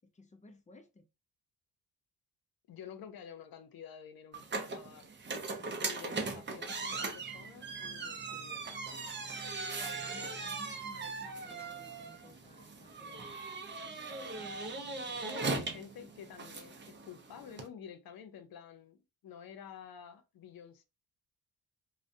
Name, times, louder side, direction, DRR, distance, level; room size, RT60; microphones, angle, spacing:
voice 1, 0.1-1.1 5.6-5.9 9.8-14.7, left 2 dB, 20° left, 0.4 m, -57 dB
voice 2, 2.7-5.1 5.6-8.8 15.0-20.8, left 8 dB, 65° left, 0.6 m, -50 dB
sound 1, 4.3-17.7, right 3 dB, 30° right, 0.5 m, -39 dB
2.3 x 2.1 x 2.5 m
cardioid pair, 85°, 39 cm